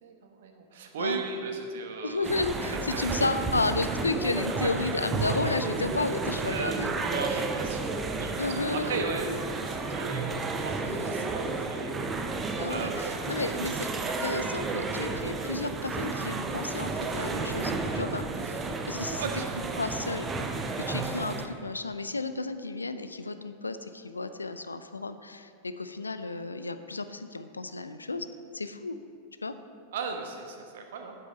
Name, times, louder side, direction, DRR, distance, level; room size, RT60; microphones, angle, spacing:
voice 1, 0.0-2.3 2.7-3.4 6.2-7.9 8.2-12.0 12.7-13.2 13.5-13.8 19.2-19.5 29.9-31.2, right 5 dB, 60° right, 4 dB, 1.1 m, -37 dB
voice 2, 2.0-6.9 8.4-9.4 10.8-11.3 12.6-19.2 19.8-20.3 20.8-28.3 28.5-29.0 29.4-29.5, left 3 dB, 80° left, 11 dB, 0.4 m, -32 dB
sound 1, 2.2-21.5, right 3 dB, 20° right, 0.8 m, -32 dB
8.6 x 8.2 x 5.3 m, 2.3 s
figure-of-eight pair, 90°, 0 cm